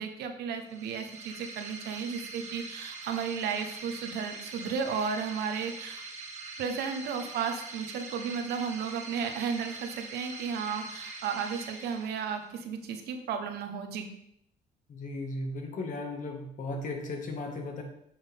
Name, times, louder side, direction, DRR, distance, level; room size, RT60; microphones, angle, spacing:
voice 1, 0.0-6.0 6.6-14.1, right 6 dB, 75° right, 6 dB, 1.2 m, -34 dB
sound 1, 0.6-12.6, right 3 dB, 40° right, 1.6 m, -43 dB
voice 2, 14.9-17.8, left 2 dB, 50° left, 2 dB, 1.9 m, -36 dB
9.4 x 6.3 x 3.6 m, 0.74 s
cardioid pair, 110°, 17 cm